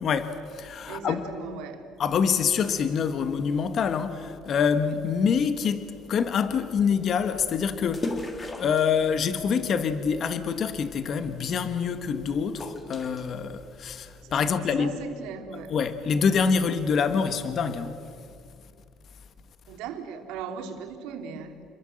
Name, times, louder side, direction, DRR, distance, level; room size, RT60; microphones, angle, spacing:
voice 1, 0.0-1.3 2.0-8.1 8.6-15.0 15.7-18.0, left 6 dB, 45° left, 1.4 m, -26 dB
voice 2, 0.9-1.8 14.2-14.4 14.8-15.7 19.7-21.6, right 6 dB, 85° right, 2.9 m, -38 dB
sound 1, 7.2-14.0, left 2 dB, 20° left, 2.4 m, -40 dB
28.0 x 22.0 x 7.8 m
cardioid pair, 125°, 0 cm